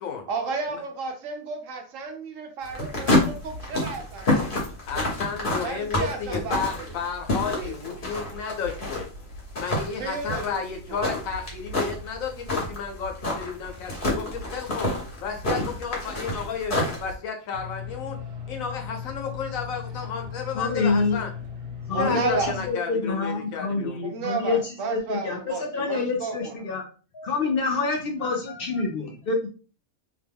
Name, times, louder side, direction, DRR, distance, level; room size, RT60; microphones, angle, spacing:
voice 1, 0.3-4.6 5.6-7.0 7.5-7.8 10.0-11.1 21.9-22.6 24.0-26.5, right 4 dB, 75° right, 5 dB, 1.0 m, -32 dB
sound 1, 2.6-17.1, left 1 dB, 45° left, 1.2 m, -28 dB
voice 2, 4.9-9.1 9.6-14.9 15.2-18.2 18.5-21.3 22.0-24.0, left 6 dB, 85° left, 3 dB, 1.1 m, -32 dB
sound 2, 17.5-22.7, left 6 dB, 60° right, 0.8 m, -37 dB
voice 3, 20.5-21.2 21.9-26.8 27.1-29.5, left 4 dB, 60° left, 1 dB, 0.6 m, -27 dB
2.9 x 2.2 x 3.4 m, 0.38 s
omnidirectional pair, 1.4 m